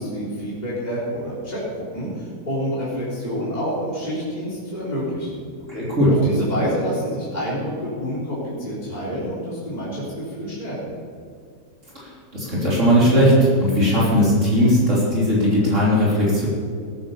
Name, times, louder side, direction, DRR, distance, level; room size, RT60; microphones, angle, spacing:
voice 1, 0.0-5.4 6.2-10.9, equal, 25° left, -8 dB, 3.7 m, -28 dB
voice 2, 5.7-6.1 12.0-16.5, equal, 45° right, -6 dB, 3.7 m, -18 dB
18.5 x 9.9 x 5.5 m, 2.2 s
omnidirectional pair, 1.7 m